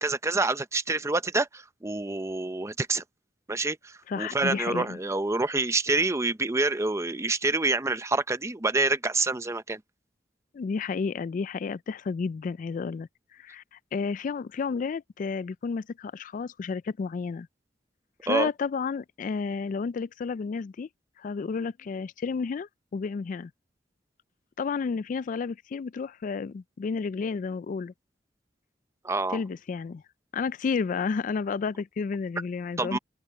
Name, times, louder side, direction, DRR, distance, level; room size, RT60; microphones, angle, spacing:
voice 1, 0.0-3.0 3.5-9.8 18.3-18.5 29.0-29.4 32.8-33.0, right 3 dB, 15° right, 0.7 m, -27 dB
voice 2, 4.1-5.0 10.5-17.5 18.2-20.9 21.2-23.5 24.6-27.9 29.3-30.0 30.3-33.0, left 5 dB, 45° left, 0.3 m, -31 dB
open air
head